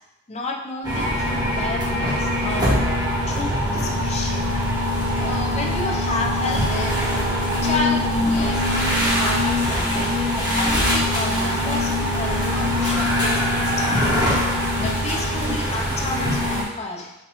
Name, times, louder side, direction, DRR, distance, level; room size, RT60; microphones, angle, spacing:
voice 1, 0.3-2.8 3.3-4.5 5.2-7.0 7.6-9.9 10.3-14.4 14.8-17.1, left 2 dB, 35° left, 0 dB, 0.5 m, -31 dB
sound 1, 0.8-16.6, left 1 dB, 20° right, 1.0 m, -22 dB
4.9 x 2.2 x 3.0 m, 0.91 s
head